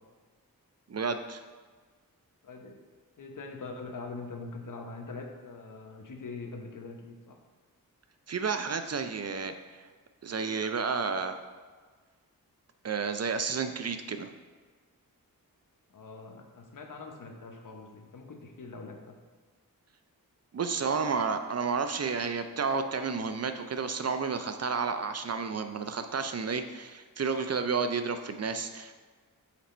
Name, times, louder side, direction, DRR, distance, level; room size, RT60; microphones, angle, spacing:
voice 1, 0.9-1.4 8.3-9.5 9.8-9.9 10.2-11.3 12.8-14.3 20.5-28.9, right 5 dB, 45° right, 8 dB, 0.5 m, -31 dB
voice 2, 2.4-2.8 3.2-7.4 15.9-19.2, left 3 dB, 60° left, 3 dB, 1.0 m, -43 dB
5.9 x 4.1 x 4.3 m, 1.4 s
cardioid pair, 65°, 35 cm